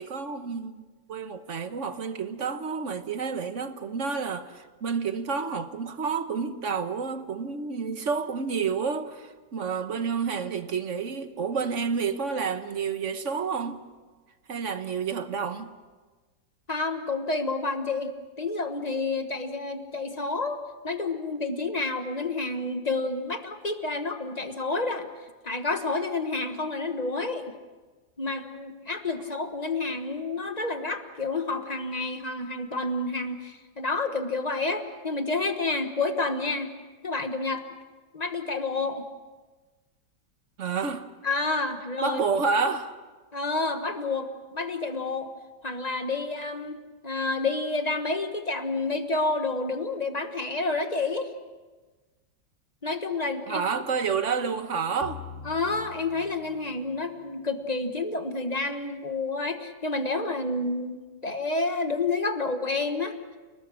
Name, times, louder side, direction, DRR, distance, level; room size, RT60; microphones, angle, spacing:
voice 1, 0.0-13.9 14.5-15.7 40.6-41.1 42.0-43.0 53.5-55.2, right 5 dB, 50° right, 1.4 m, -29 dB
voice 2, 16.7-18.1 18.4-25.1 25.4-27.5 28.2-36.7 37.0-37.6 38.1-39.0 41.2-42.2 43.3-45.3 45.6-46.8 47.0-51.3 52.8-53.6 55.4-63.1, left 3 dB, 25° left, 1.3 m, -29 dB
sound 1, 55.0-57.4, left 5 dB, 45° left, 1.5 m, -44 dB
30.0 x 19.5 x 6.4 m
omnidirectional pair, 1.9 m